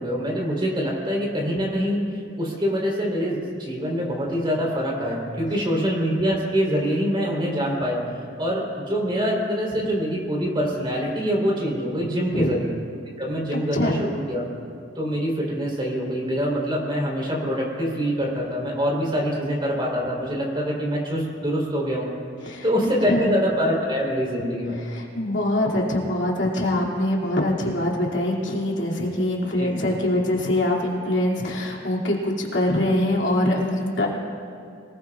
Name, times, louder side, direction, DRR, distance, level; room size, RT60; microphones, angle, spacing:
voice 1, 0.0-12.7 13.2-14.4 15.0-22.1 22.4-24.8 29.6-29.7, equal, 25° right, -3 dB, 3.8 m, -25 dB
voice 2, 13.5-14.0 22.4-22.6 23.1-23.3 24.8-34.1, left 1 dB, 65° left, -3 dB, 2.6 m, -24 dB
24.5 x 19.5 x 2.5 m, 2.3 s
head